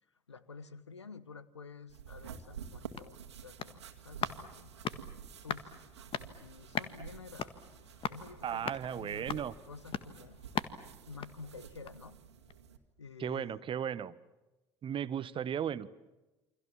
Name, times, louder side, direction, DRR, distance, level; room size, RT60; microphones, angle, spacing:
voice 1, 0.3-4.7 5.4-5.8 6.4-7.5 8.1-10.4 11.1-12.2 13.0-13.6, left 4 dB, 85° left, 17 dB, 1.1 m, -50 dB
sound 1, 1.9-12.8, right 7 dB, 80° right, 2.0 m, -50 dB
sound 2, 2.7-12.1 12.5-12.6, left 8 dB, 40° left, 1.7 m, -42 dB
voice 2, 8.4-9.5 13.2-14.2 14.8-15.9, right 9 dB, 35° right, 17 dB, 1.1 m, -35 dB
28.5 x 25.5 x 7.4 m, 1.1 s
figure-of-eight pair, 65°, 14 cm